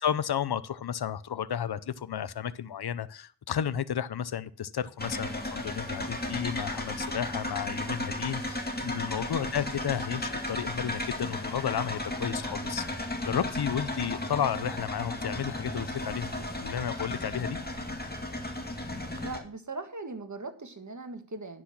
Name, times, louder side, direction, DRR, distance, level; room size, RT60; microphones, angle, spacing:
voice 1, 0.0-17.6, left 9 dB, 55° left, 16 dB, 0.7 m, -33 dB
sound 1, 5.0-19.4, left 1 dB, 20° left, 2.2 m, -34 dB
voice 2, 19.2-21.6, right 3 dB, 40° right, 7 dB, 1.7 m, -39 dB
10.0 x 6.2 x 6.0 m, 0.42 s
cardioid pair, 50°, 46 cm